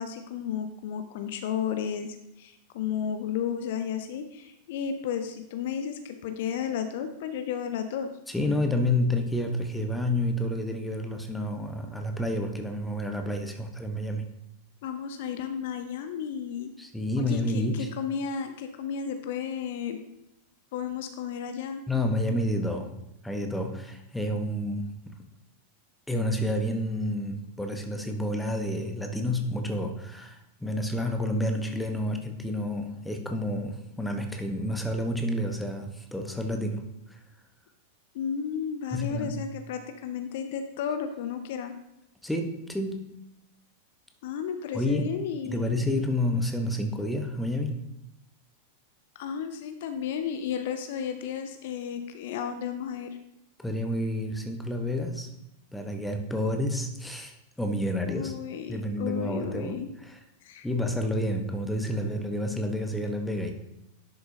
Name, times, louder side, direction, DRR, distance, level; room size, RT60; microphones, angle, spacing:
voice 1, 0.0-8.1 14.8-16.7 17.2-20.0 20.7-21.8 38.1-41.7 44.2-45.8 49.2-53.2 58.1-59.9 60.4-60.7, left 8 dB, 55° left, 8 dB, 0.7 m, -33 dB
voice 2, 8.3-14.3 16.8-17.9 21.9-22.9 23.2-25.2 26.1-36.8 38.9-39.4 42.2-43.1 44.7-45.1 45.4-47.8 53.6-55.3 55.7-58.3 58.7-60.2 60.6-63.5, left 1 dB, 5° left, 4 dB, 1.1 m, -29 dB
11.0 x 6.5 x 2.8 m, 0.86 s
figure-of-eight pair, 90°, 0 cm